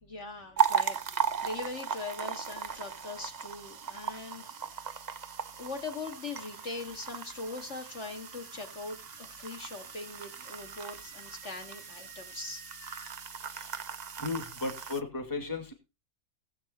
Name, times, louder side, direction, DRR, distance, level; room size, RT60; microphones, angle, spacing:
voice 1, 0.0-4.4 4.7-4.9 5.6-12.6, left 3 dB, 45° left, 4 dB, 2.1 m, -41 dB
sound 1, 0.6-15.0, right 7 dB, 45° right, 0.5 m, -36 dB
sound 2, 6.0-13.1, left 1 dB, 70° left, 7.0 m, -58 dB
voice 2, 14.2-15.7, left 3 dB, 10° left, 5 dB, 2.0 m, -35 dB
17.5 x 7.8 x 4.3 m, 0.29 s
omnidirectional pair, 1.7 m